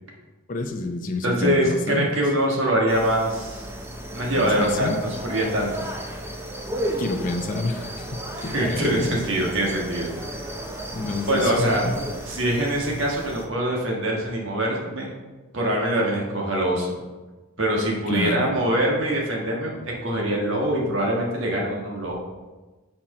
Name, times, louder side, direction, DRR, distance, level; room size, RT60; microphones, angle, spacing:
voice 1, 0.5-2.0 4.4-5.0 7.0-9.2 10.9-12.0 18.1-18.5, left 2 dB, 35° left, 3 dB, 0.5 m, -29 dB
voice 2, 1.2-3.7 4.1-4.9 5.2-5.7 8.4-10.4 11.3-11.8 12.3-15.1 15.5-17.0 17.6-22.1, right 1 dB, 60° right, -2 dB, 1.4 m, -24 dB
sound 1, 2.9-13.5, right 1 dB, 10° right, 0.5 m, -34 dB
5.9 x 4.4 x 4.8 m, 1.2 s
head